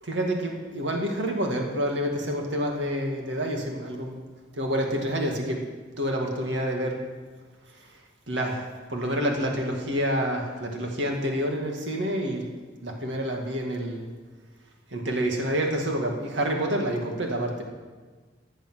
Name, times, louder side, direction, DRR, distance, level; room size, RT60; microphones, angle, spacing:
voice 1, 0.0-4.2 4.5-5.6 6.0-7.0 8.3-12.5 12.8-14.1 14.9-17.6, equal, 85° right, 1 dB, 2.0 m, -28 dB
15.0 x 10.5 x 6.2 m, 1.4 s
head